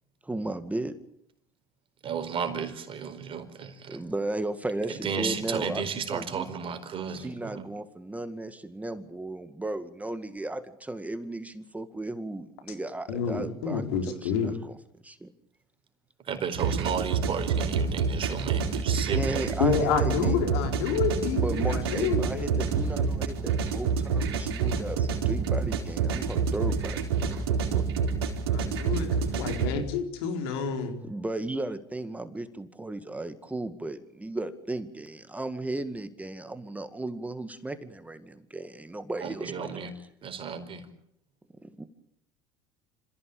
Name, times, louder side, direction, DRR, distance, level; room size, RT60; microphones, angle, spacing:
voice 1, 0.2-1.0 3.9-5.8 6.1-6.5 7.1-14.8 15.0-15.3 19.1-20.4 21.2-27.9 31.0-39.9 41.6-41.9, right 2 dB, 10° right, 11 dB, 2.0 m, -35 dB
voice 2, 2.0-4.0 4.9-7.7 16.2-19.7 39.2-39.9 40.2-40.9, right 6 dB, 45° right, 8 dB, 4.6 m, -33 dB
voice 3, 13.1-14.5 19.6-22.6 28.8-29.1 29.4-31.0, left 6 dB, 80° left, 5 dB, 4.3 m, -28 dB
sound 1, 16.5-29.7, right 5 dB, 85° right, 4.4 m, -28 dB
27.5 x 15.5 x 8.8 m, 0.73 s
hypercardioid pair, 75°, 13 cm